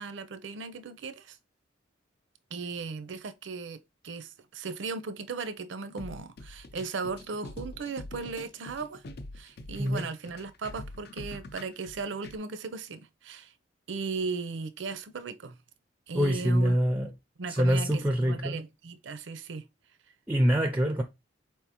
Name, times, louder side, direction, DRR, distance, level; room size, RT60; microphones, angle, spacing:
voice 1, 0.0-1.4 2.5-3.8 4.0-9.0 9.4-13.5 13.9-15.5 16.1-16.8 17.4-19.6, right 4 dB, 75° right, 0.5 m, -37 dB
sound 1, 6.0-12.4, left 1 dB, 55° left, 0.5 m, -44 dB
voice 2, 16.1-17.1 17.5-18.6 20.3-21.0, equal, 10° right, 0.4 m, -25 dB
4.5 x 3.4 x 2.9 m
head